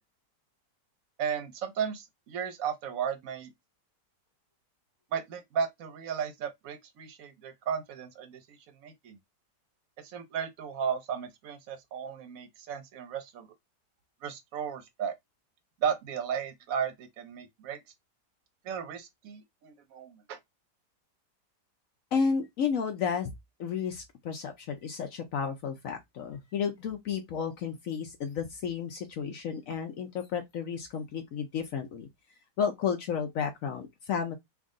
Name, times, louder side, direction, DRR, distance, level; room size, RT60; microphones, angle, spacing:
voice 1, 1.2-3.5 5.1-9.2 10.0-13.5 14.2-15.1 15.8-17.8 18.6-20.4, right 7 dB, 60° right, 1.0 m, -35 dB
voice 2, 22.1-23.3 23.6-32.1 32.6-34.4, left 6 dB, 65° left, 0.9 m, -32 dB
3.5 x 2.4 x 3.7 m
omnidirectional pair, 1.8 m